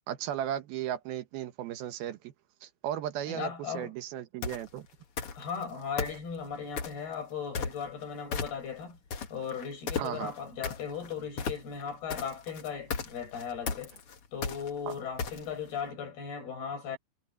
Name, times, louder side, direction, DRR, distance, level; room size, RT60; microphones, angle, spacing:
voice 1, 0.1-2.3 2.6-4.9 10.0-10.3 14.9-15.0, right 11 dB, 80° right, 3.1 m, -35 dB
voice 2, 3.3-3.9 5.4-9.0 9.3-14.0 14.3-17.0, left 7 dB, 90° left, 9.0 m, -37 dB
sound 1, 4.4-4.7 5.2-5.6 6.0-7.0 7.5-8.0 8.3-8.8 9.1-15.7, left 5 dB, 45° left, 2.2 m, -35 dB
omnidirectional pair, 4.4 m